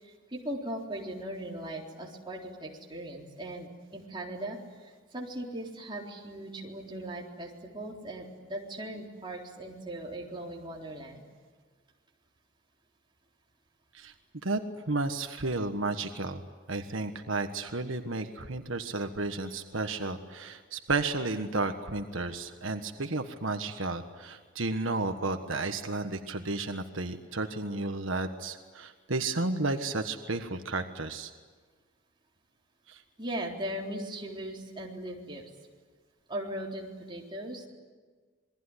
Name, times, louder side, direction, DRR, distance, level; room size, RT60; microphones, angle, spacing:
voice 1, 0.0-11.2 33.2-35.4 36.3-37.7, right 1 dB, 25° right, -1 dB, 4.0 m, -39 dB
voice 2, 14.9-16.4 16.7-31.3 32.9-33.0, right 3 dB, 80° right, 7 dB, 1.5 m, -32 dB
27.5 x 21.5 x 9.9 m, 1.5 s
head